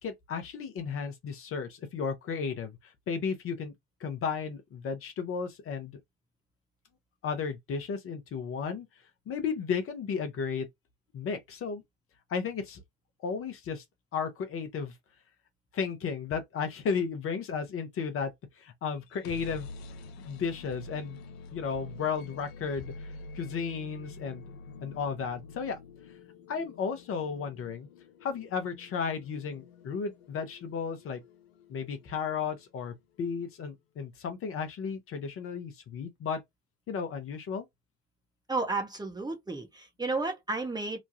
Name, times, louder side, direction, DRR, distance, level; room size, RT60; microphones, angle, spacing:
voice 1, 0.0-3.7 4.0-6.0 7.2-8.9 9.3-10.7 11.1-11.8 12.3-12.8 13.2-13.8 14.1-14.9 15.7-18.3 18.6-19.7 20.2-21.2 21.5-23.1 23.3-24.4 24.8-25.8 26.5-27.9 28.2-31.2 31.7-36.4 36.9-37.7, left 6 dB, 45° left, 0.8 m, -34 dB
sound 1, 19.0-32.8, left 3 dB, 80° left, 0.5 m, -47 dB
voice 2, 38.5-41.0, right 3 dB, 15° right, 0.8 m, -32 dB
3.0 x 2.2 x 2.7 m
hypercardioid pair, 60°, 31 cm